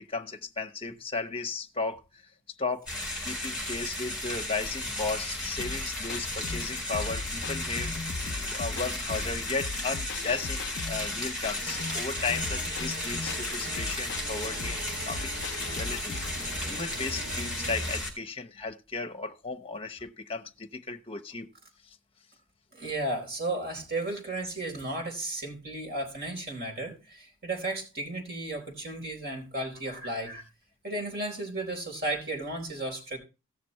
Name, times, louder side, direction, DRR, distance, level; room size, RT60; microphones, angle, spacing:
voice 1, 0.0-2.3 2.6-2.9 3.2-8.1 8.5-21.5 21.8-22.0, left 4 dB, 25° left, 0.9 m, -35 dB
sound 1, 2.9-18.1, left 1 dB, 5° right, 4.5 m, -34 dB
sound 2, 5.6-16.4, left 4 dB, 55° left, 0.5 m, -39 dB
sound 3, 11.6-17.9, right 1 dB, 65° right, 2.7 m, -42 dB
voice 2, 22.7-30.4 30.8-33.2, right 2 dB, 45° right, 4.1 m, -34 dB
17.0 x 6.8 x 3.1 m
head